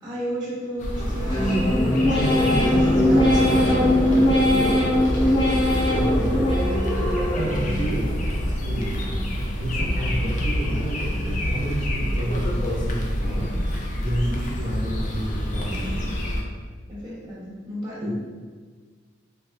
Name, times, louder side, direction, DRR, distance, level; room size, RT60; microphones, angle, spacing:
voice 1, 0.0-4.7 16.9-18.1, equal, 20° right, -9 dB, 0.9 m, -33 dB
sound 1, 0.8-16.4, equal, 40° left, 0.3 m, -27 dB
sound 2, 1.0-8.1, equal, 60° left, 0.7 m, -26 dB
sound 3, 1.3-7.1 7.5-8.2 8.6-9.3 9.7-10.4 10.8-11.4 11.9-12.5, left 1 dB, 25° left, 0.9 m, -23 dB
voice 2, 5.9-6.4 7.3-9.1 9.5-16.1 18.0-18.1, right 1 dB, 55° right, -8 dB, 0.6 m, -30 dB
3.8 x 2.3 x 2.2 m, 1.5 s
head